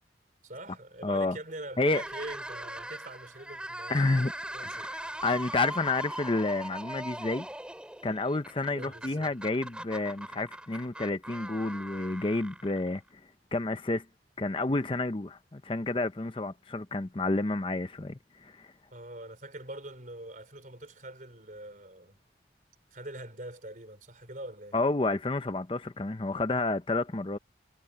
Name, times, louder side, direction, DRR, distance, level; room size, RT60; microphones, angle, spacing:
voice 1, 0.4-4.0 4.5-4.9 8.8-9.3 18.9-22.2 22.9-24.8, right 1 dB, 45° right, 4.1 m, -43 dB
voice 2, 1.0-1.4 1.8-2.0 3.9-4.3 4.6-7.5 8.0-13.0 13.5-14.0 14.4-18.7 24.7-27.4, left 2 dB, 25° left, 0.6 m, -30 dB
sound 1, 1.8-13.1, right 1 dB, 5° right, 4.2 m, -41 dB
head